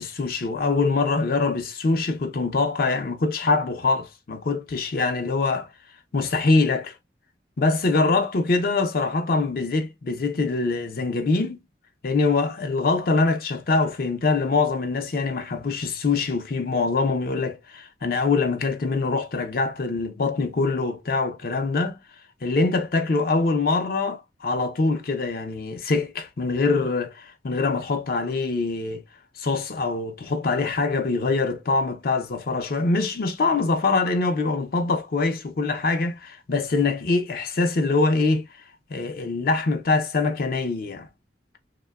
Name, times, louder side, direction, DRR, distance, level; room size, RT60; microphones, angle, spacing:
voice 1, 0.0-5.7 6.1-6.9 7.6-11.6 12.0-22.0 22.4-29.0 29.4-38.6 38.9-41.1, left 3 dB, 55° left, 0.5 m, -24 dB
2.8 x 2.1 x 2.2 m
head